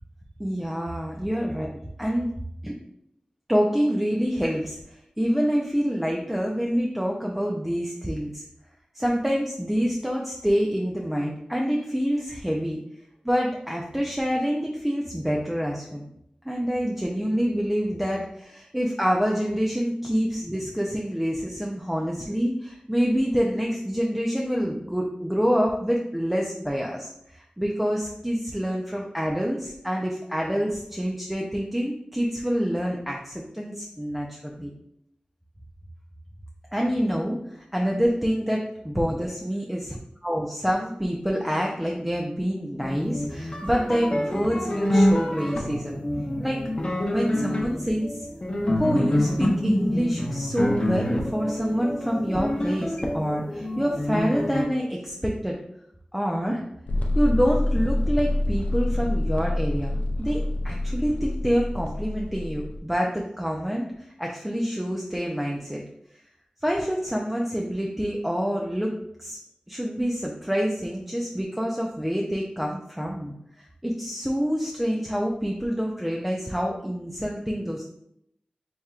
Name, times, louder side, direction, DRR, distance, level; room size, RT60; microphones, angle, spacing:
voice 1, 0.4-1.7 2.0-2.3 2.6-2.7 3.5-8.4 8.9-12.8 13.2-16.1 16.4-34.7 36.7-40.0 40.2-46.0 46.4-46.6 47.1-48.3 48.7-55.6 56.1-56.6 57.1-65.8 66.6-68.9 69.2-69.4 69.7-77.8, equal, 5° right, -2 dB, 0.5 m, -27 dB
sound 1, 42.8-54.6, left 1 dB, 40° left, 0.8 m, -26 dB
sound 2, 56.9-62.8, left 1 dB, 70° left, 0.4 m, -26 dB
4.3 x 3.4 x 2.4 m, 0.76 s
wide cardioid pair, 55°, 3 cm